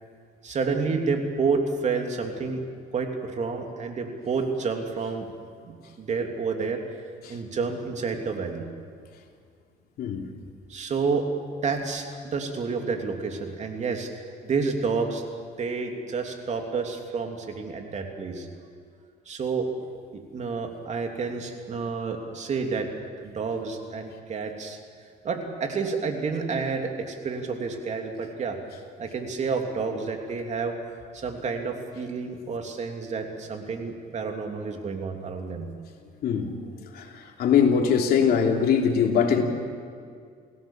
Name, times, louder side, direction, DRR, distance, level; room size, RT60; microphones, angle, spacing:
voice 1, 0.4-2.6 2.9-5.3 5.6-6.8 7.3-8.7 10.7-11.2 11.6-14.1 14.4-15.2 15.6-18.5 19.3-19.7 20.1-22.9 23.2-24.8 25.2-28.6 29.0-30.8 31.1-35.7, right 4 dB, 45° right, 3 dB, 3.1 m, -29 dB
voice 2, 36.9-39.4, left 7 dB, 65° left, 2 dB, 3.2 m, -22 dB
28.5 x 17.5 x 7.4 m, 2.2 s
cardioid pair, 110°, 17 cm